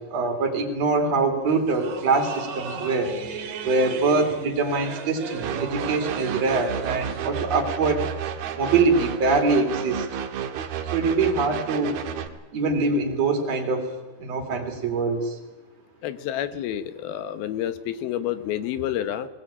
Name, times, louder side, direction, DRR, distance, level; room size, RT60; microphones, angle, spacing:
voice 1, 0.1-3.1 3.6-8.1 8.5-10.1 10.9-12.0 12.5-13.9 14.2-15.4, right 3 dB, 45° right, 2 dB, 4.1 m, -23 dB
sound 1, 1.5-7.3, right 6 dB, 60° right, 3.2 m, -36 dB
sound 2, 5.4-12.3, right 8 dB, 80° right, 3.2 m, -31 dB
voice 2, 16.0-19.3, left 11 dB, 75° left, 11 dB, 2.9 m, -29 dB
20.0 x 19.5 x 8.9 m, 1.1 s
omnidirectional pair, 4.5 m